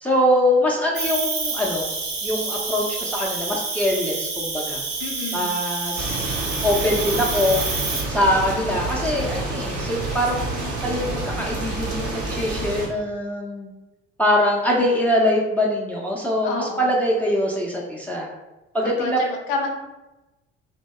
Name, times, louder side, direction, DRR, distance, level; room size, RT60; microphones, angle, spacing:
voice 1, 0.0-1.9 2.2-4.8 5.3-6.3 6.6-7.6 8.1-13.7 14.2-18.3 18.7-19.2, left 1 dB, 5° left, -2 dB, 0.5 m, -23 dB
Cricket, 0.9-8.0, right 4 dB, 45° right, 0.7 m, -28 dB
voice 2, 5.0-5.5 16.4-16.9 18.8-19.7, left 3 dB, 75° left, 2 dB, 0.5 m, -29 dB
sound 1, 5.9-12.9, right 2 dB, 70° right, 1.0 m, -28 dB
2.6 x 2.1 x 2.2 m, 1.0 s
hypercardioid pair, 55°, 31 cm